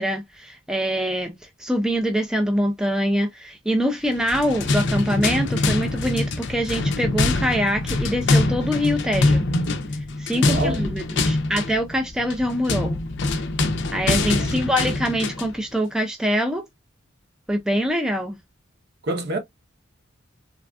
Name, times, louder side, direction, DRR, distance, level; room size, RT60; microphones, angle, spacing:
voice 1, 0.0-9.5 9.9-13.0 13.9-16.7 17.5-18.4, equal, 5° right, 0.3 m, -24 dB
sound 1, 4.1-15.6, left 2 dB, 55° left, 0.5 m, -24 dB
voice 2, 10.3-10.9 14.0-14.5 19.0-19.4, right 1 dB, 50° right, 0.7 m, -28 dB
3.3 x 2.4 x 2.2 m
head